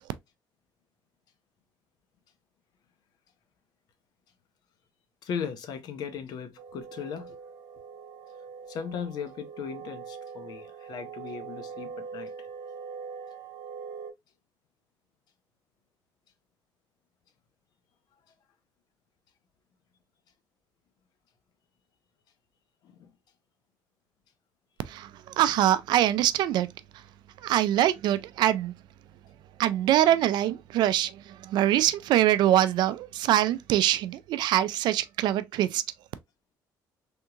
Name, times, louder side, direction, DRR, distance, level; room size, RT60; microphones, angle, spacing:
voice 1, 5.2-7.4 8.7-12.5 22.8-23.1, left 7 dB, 65° left, 0.7 m, -37 dB
sound 1, 6.6-14.1, right 6 dB, 55° right, 1.1 m, -42 dB
voice 2, 24.8-26.7 27.4-28.8 29.6-35.8, right 12 dB, 70° right, 0.3 m, -24 dB
3.5 x 2.8 x 2.3 m
cardioid pair, 120°, 8 cm